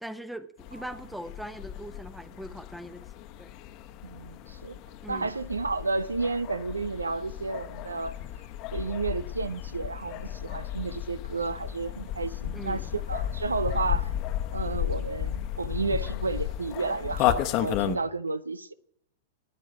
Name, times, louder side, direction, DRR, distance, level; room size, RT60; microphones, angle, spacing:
voice 1, 0.0-3.1 3.4-3.5 5.0-5.3 12.5-12.9, equal, ahead, 0.9 m, -40 dB
sound 1, 0.6-18.0, left 12 dB, 45° left, 1.0 m, -33 dB
voice 2, 4.0-4.8 5.1-8.2 8.7-14.1 14.5-18.7, right 3 dB, 85° right, 0.5 m, -32 dB
15.0 x 9.7 x 6.0 m
figure-of-eight pair, 100°, 0 cm